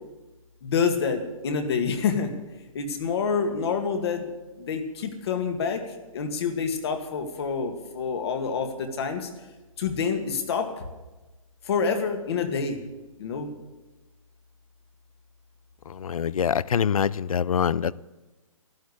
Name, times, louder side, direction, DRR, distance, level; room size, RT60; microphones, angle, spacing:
voice 1, 0.6-2.3 2.7-4.3 4.6-5.8 6.1-9.3 9.8-10.9 11.6-12.8 13.2-13.5, left 5 dB, 50° left, 6 dB, 2.1 m, -27 dB
voice 2, 15.9-17.9, left 7 dB, 80° left, 21 dB, 0.5 m, -25 dB
13.0 x 10.5 x 8.3 m, 1.1 s
hypercardioid pair, 150°, 18 cm